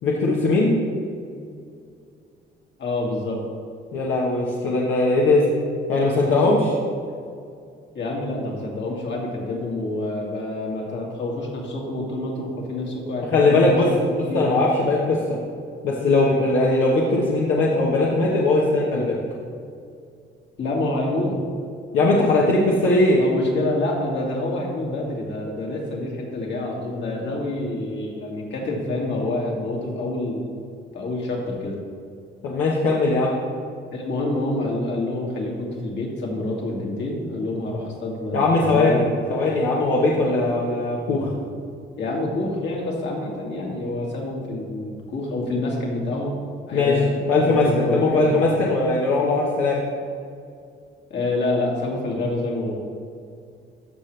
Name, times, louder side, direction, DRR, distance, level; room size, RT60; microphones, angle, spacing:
voice 1, 0.0-0.7 3.9-5.4 5.9-6.6 13.3-13.9 14.2-15.4 15.8-19.2 21.9-23.2 32.4-33.4 38.3-39.0 39.3-41.3 46.7-47.0 47.3-49.8, left 2 dB, 85° left, -4 dB, 1.2 m, -20 dB
voice 2, 2.8-3.4 6.2-6.7 7.9-14.5 20.6-21.4 23.2-31.8 33.9-39.1 42.0-46.4 46.7-48.3 51.1-52.8, left 2 dB, 65° left, -2 dB, 2.2 m, -27 dB
13.5 x 5.9 x 3.3 m, 2.3 s
cardioid pair, 90°, 20 cm